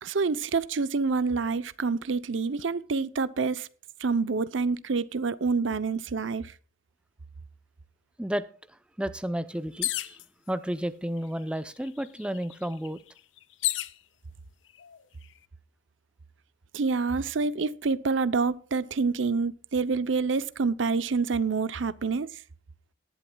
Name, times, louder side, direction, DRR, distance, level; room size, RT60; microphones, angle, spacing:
voice 1, 0.0-3.7 4.0-6.4 16.7-22.3, right 4 dB, 75° right, 0.7 m, -27 dB
voice 2, 9.0-10.2 10.5-13.0, equal, 5° right, 0.6 m, -32 dB
sound 1, 9.8-10.2 11.2-11.3 11.6-14.0 14.7-15.2, left 15 dB, 75° left, 0.6 m, -32 dB
18.5 x 11.0 x 2.3 m
head